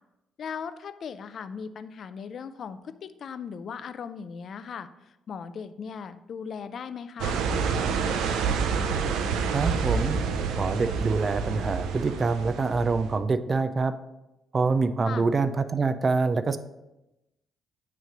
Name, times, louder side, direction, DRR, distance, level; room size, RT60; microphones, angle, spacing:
voice 1, 0.4-4.9 5.3-7.4 15.1-15.3, left 6 dB, 55° left, 12 dB, 0.4 m, -38 dB
sound 1, 7.2-13.2, right 5 dB, 90° right, 0.6 m, -28 dB
voice 2, 9.5-10.2 10.6-13.9 14.5-16.6, right 4 dB, 35° right, 11 dB, 0.4 m, -25 dB
9.1 x 3.2 x 5.1 m, 0.95 s
cardioid pair, 90°, 0 cm